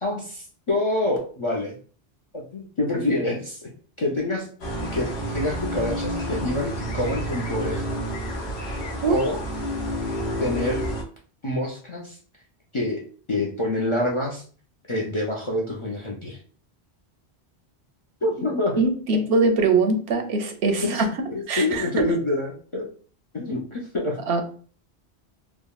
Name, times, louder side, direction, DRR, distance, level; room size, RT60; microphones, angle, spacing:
voice 1, 0.0-1.7 2.3-3.7 4.0-4.5 4.8-8.0 9.1-9.4 10.4-10.8 11.4-12.2 12.7-13.0 13.3-14.4 14.9-16.4 18.2-19.2 20.8-21.0 21.3-22.9 23.3-24.2, left 2 dB, 45° left, -2 dB, 0.4 m, -27 dB
sound 1, 4.6-11.0, equal, 85° left, 1.0 m, -29 dB
voice 2, 18.8-21.1 21.5-22.1 24.3-24.4, right 3 dB, 85° right, 5 dB, 0.9 m, -22 dB
3.5 x 2.1 x 2.3 m, 0.42 s
omnidirectional pair, 1.1 m